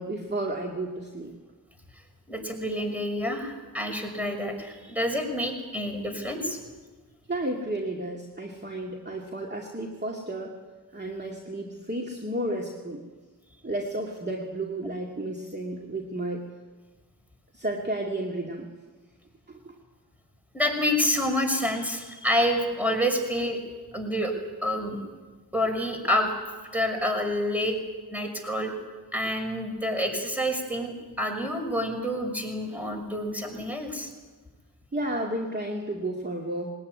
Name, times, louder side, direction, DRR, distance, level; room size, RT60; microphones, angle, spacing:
voice 1, 0.0-1.3 7.3-10.6 10.9-13.0 13.6-16.4 17.5-18.7 19.5-19.7 34.9-36.7, right 1 dB, 25° right, 0 dB, 2.4 m, -32 dB
voice 2, 2.3-6.6 20.5-23.6 23.9-24.3 24.6-25.0 25.5-26.3 26.7-27.8 28.1-28.7 29.1-34.1, equal, 5° right, 3 dB, 6.0 m, -28 dB
21.0 x 18.5 x 9.7 m, 1.3 s
wide cardioid pair, 65°, 37 cm